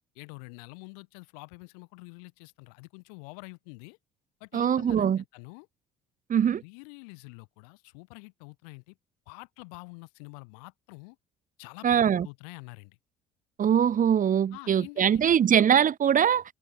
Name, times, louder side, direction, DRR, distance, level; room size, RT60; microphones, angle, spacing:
voice 1, 0.1-4.0 4.4-5.7 6.6-9.0 9.3-11.2 11.6-13.0 14.5-15.4, left 34 dB, 75° left, 4.9 m, -47 dB
voice 2, 4.5-5.2 6.3-6.6 11.8-12.3 13.6-16.4, right 8 dB, 45° right, 1.8 m, -22 dB
hypercardioid pair, 60°, 19 cm